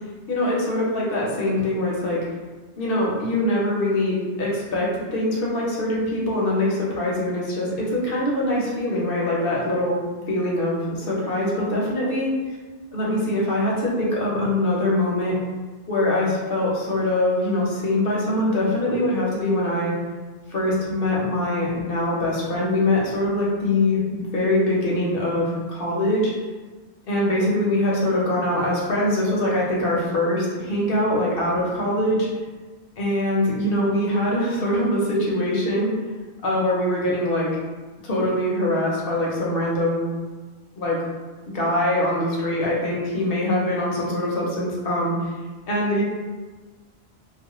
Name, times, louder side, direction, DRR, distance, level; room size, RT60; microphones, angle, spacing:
voice 1, 0.3-2.2 2.8-12.3 12.9-15.3 15.9-19.9 20.5-26.3 27.1-32.3 33.0-35.9 36.4-37.5 38.0-40.1 40.8-41.0 41.5-45.3 45.7-46.0, left 1 dB, 60° left, -4 dB, 0.8 m, -23 dB
2.4 x 2.1 x 2.9 m, 1.3 s
omnidirectional pair, 1.2 m